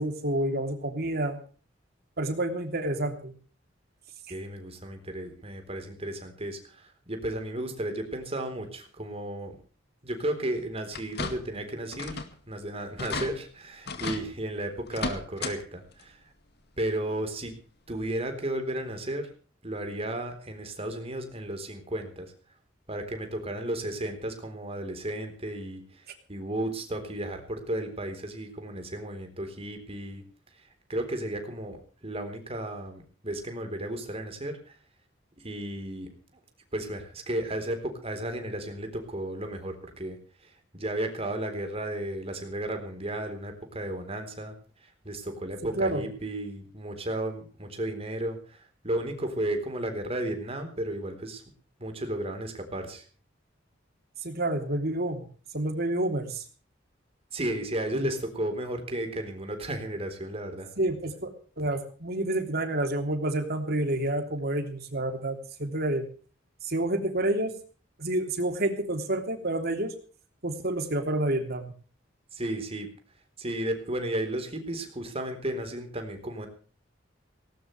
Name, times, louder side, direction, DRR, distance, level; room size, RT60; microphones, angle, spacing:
voice 1, 0.0-1.4 2.2-3.3 45.8-46.0 54.2-55.3 55.5-56.4 57.9-58.1 60.8-66.0 66.6-67.5 68.0-69.9 70.4-71.7, right 1 dB, 55° right, 6 dB, 3.2 m, -29 dB
voice 2, 4.3-9.6 10.0-16.2 16.8-17.6 17.9-19.3 19.6-22.3 22.9-30.2 30.9-34.8 35.4-36.1 36.7-44.5 44.8-51.4 51.8-53.0 57.3-60.7 72.3-72.9 73.4-76.5, right 1 dB, 30° right, 6 dB, 3.9 m, -34 dB
sound 1, 10.9-11.6 11.9-12.4 12.7-12.8 13.0-13.3 13.9-14.2 14.9-15.6 15.9-16.0 17.4-17.5 18.0-18.1, left 3 dB, 60° left, 2.1 m, -34 dB
18.5 x 18.5 x 3.3 m, 0.40 s
head